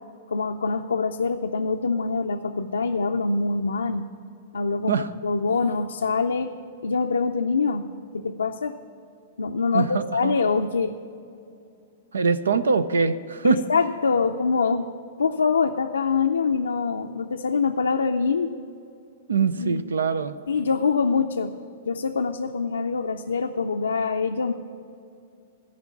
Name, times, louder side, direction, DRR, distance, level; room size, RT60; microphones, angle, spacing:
voice 1, 0.3-4.1 4.5-6.5 6.8-7.9 8.1-8.7 9.4-11.0 12.5-12.6 13.4-14.9 15.2-18.5 19.6-19.8 20.5-21.5 21.9-24.5, left 4 dB, 85° left, 3 dB, 0.4 m, -24 dB
voice 2, 9.7-10.4 12.1-13.6 19.3-20.4, right 5 dB, 85° right, 14 dB, 0.5 m, -23 dB
14.0 x 5.2 x 8.4 m, 2.6 s
hypercardioid pair, 115°, 0 cm